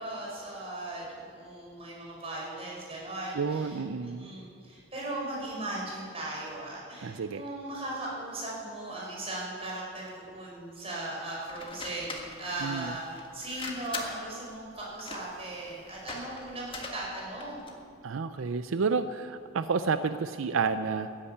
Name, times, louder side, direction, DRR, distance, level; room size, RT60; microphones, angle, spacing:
voice 1, 0.0-17.8, right 2 dB, 30° right, -4 dB, 5.2 m, -38 dB
voice 2, 3.3-4.3 7.0-7.4 12.6-13.0 18.0-21.1, right 5 dB, 85° right, 11 dB, 0.5 m, -30 dB
sound 1, 11.5-17.8, left 3 dB, 25° left, 1.6 m, -43 dB
14.5 x 9.9 x 8.7 m, 2.3 s
head